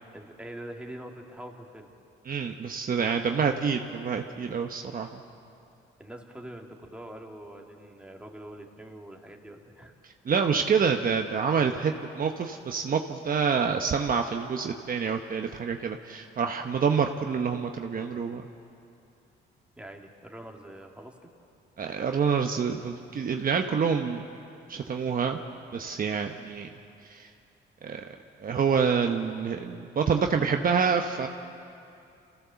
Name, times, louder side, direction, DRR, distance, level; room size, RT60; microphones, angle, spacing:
voice 1, 0.1-1.9 6.0-9.9 19.8-21.3, right 1 dB, 5° right, 0 dB, 2.4 m, -44 dB
voice 2, 2.3-5.2 10.3-18.4 21.8-24.2 24.7-25.4 25.7-26.7 27.1-27.3 27.8-28.0 28.4-31.3, right 6 dB, 45° right, 4 dB, 1.0 m, -27 dB
27.0 x 15.5 x 7.0 m, 2.6 s
cardioid pair, 90°, 20 cm